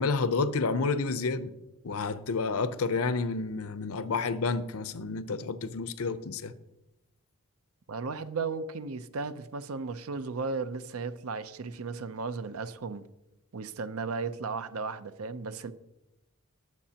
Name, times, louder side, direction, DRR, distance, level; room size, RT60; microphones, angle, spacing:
voice 1, 0.0-1.5 1.8-6.5, left 4 dB, 75° left, 0.7 m, -30 dB
voice 2, 7.9-13.0 13.5-15.7, right 4 dB, 75° right, 0.6 m, -35 dB
19.0 x 7.4 x 2.9 m
head